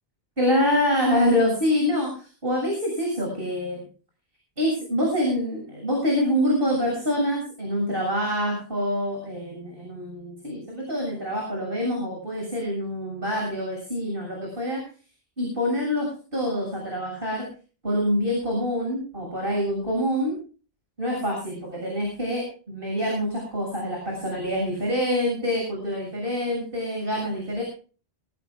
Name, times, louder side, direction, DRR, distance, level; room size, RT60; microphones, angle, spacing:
voice 1, 0.4-3.8 4.6-14.8 15.4-17.5 17.8-20.4 21.0-27.6, equal, 60° right, -1 dB, 7.3 m, -26 dB
23.5 x 17.0 x 2.4 m, 0.39 s
omnidirectional pair, 1.0 m